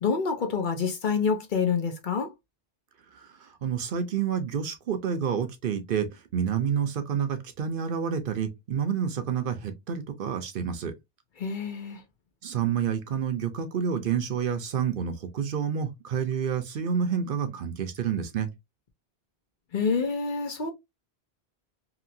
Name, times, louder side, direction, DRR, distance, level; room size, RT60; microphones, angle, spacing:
voice 1, 0.0-2.3 11.4-12.0 19.7-20.7, left 5 dB, 55° left, 0.8 m, -27 dB
voice 2, 3.1-10.9 12.4-18.5, right 7 dB, 60° right, 0.7 m, -29 dB
2.8 x 2.8 x 2.5 m
omnidirectional pair, 1.1 m